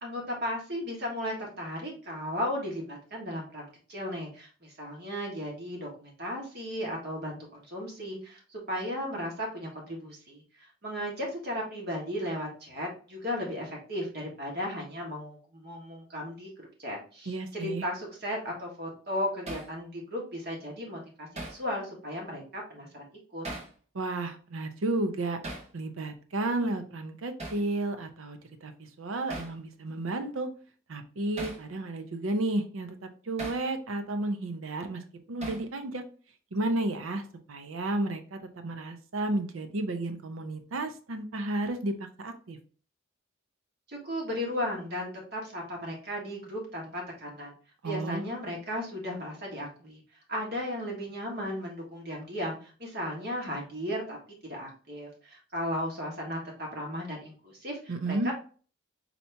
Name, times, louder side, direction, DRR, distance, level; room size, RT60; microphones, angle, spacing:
voice 1, 0.0-23.1 23.3-23.4 43.9-47.5 47.8-50.0 50.3-54.2 54.4-58.3, equal, 50° right, -1 dB, 1.4 m, -35 dB
voice 2, 17.3-17.9 23.9-25.4 25.7-30.5 30.9-36.0 36.5-37.2 37.5-42.6 47.8-48.2 57.9-58.3, right 2 dB, 85° right, 8 dB, 0.6 m, -32 dB
Hammer, 19.5-19.7 21.4-21.6 23.4-23.8 25.4-25.7 27.4-27.7 29.3-29.6 31.4-31.6 33.4-33.7 35.4-35.7, right 1 dB, 30° right, 0.9 m, -38 dB
4.2 x 2.8 x 3.3 m, 0.40 s
head